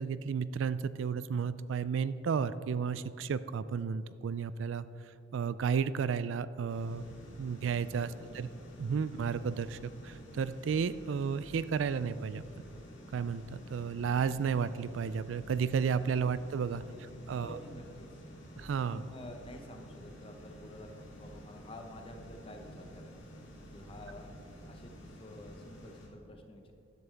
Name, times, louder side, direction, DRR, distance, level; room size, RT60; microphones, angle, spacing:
voice 1, 0.0-4.9 5.3-7.0 7.4-8.5 8.8-12.4 13.1-16.8 17.3-17.6 18.6-19.0, right 6 dB, 70° right, 15 dB, 0.3 m, -32 dB
sound 1, 6.7-26.1, equal, 75° left, 2.7 m, -51 dB
voice 2, 7.9-8.3 16.1-16.2 16.7-18.2 18.8-23.2 23.7-24.4 24.6-26.7, left 1 dB, 30° left, 3 dB, 1.0 m, -50 dB
13.5 x 10.5 x 3.4 m, 2.6 s
head